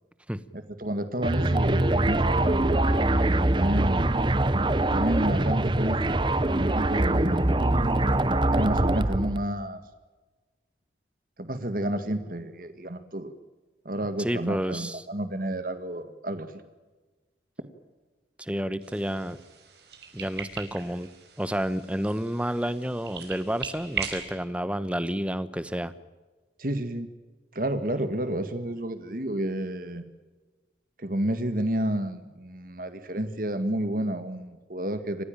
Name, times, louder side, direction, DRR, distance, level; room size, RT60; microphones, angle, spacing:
voice 1, 0.5-2.9 3.5-4.1 4.9-6.2 6.5-7.5 8.5-9.8 11.4-13.3 13.9-16.6 26.6-27.1 27.5-30.0 31.0-35.2, right 1 dB, 50° right, 10 dB, 1.9 m, -30 dB
sound 1, 1.2-9.4, right 1 dB, 25° right, 0.8 m, -23 dB
voice 2, 14.2-15.0 18.4-19.4 20.1-21.1 21.4-25.9, equal, 5° right, 13 dB, 1.0 m, -30 dB
sound 2, 18.8-24.2, right 6 dB, 65° right, 5.2 m, -39 dB
28.0 x 16.0 x 8.8 m, 1.3 s
head